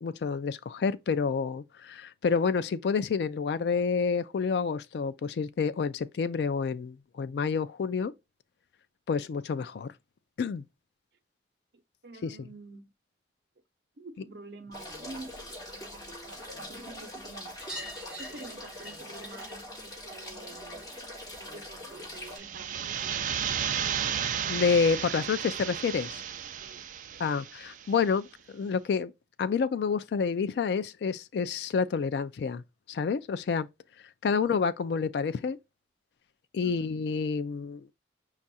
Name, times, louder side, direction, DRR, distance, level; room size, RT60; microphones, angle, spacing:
voice 1, 0.0-8.1 9.1-9.9 10.4-10.6 12.2-12.4 24.5-26.2 27.2-29.1 29.4-32.6 32.9-33.7 34.2-35.6 36.5-37.9, left 5 dB, 70° left, 0.3 m, -29 dB
voice 2, 11.7-12.9 14.0-17.6 18.2-20.9 21.3-23.5 25.1-25.2 26.6-26.8 27.1-27.2 36.6-36.9, right 2 dB, 65° right, 0.8 m, -48 dB
sound 1, 14.7-22.4, left 1 dB, 20° left, 2.5 m, -43 dB
sound 2, 17.6-22.7 23.0-24.1 25.5-25.6 25.8-25.9 26.2-26.3 27.6-27.7 28.0-28.1 28.4-28.5 29.7-29.8 30.6-30.7, equal, 5° right, 2.1 m, -48 dB
sound 3, 22.2-27.9, right 9 dB, 45° right, 0.3 m, -33 dB
5.3 x 2.4 x 4.1 m
head